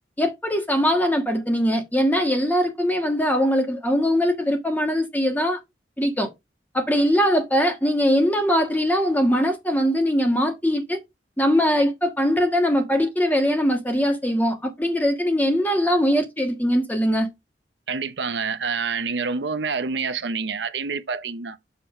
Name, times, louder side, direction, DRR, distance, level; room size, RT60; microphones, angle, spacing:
voice 1, 0.2-5.6 6.0-6.3 6.7-11.0 11.4-17.3, equal, 10° left, 1.4 m, -21 dB
voice 2, 17.9-21.6, right 5 dB, 85° right, 0.8 m, -27 dB
7.0 x 6.7 x 3.2 m
head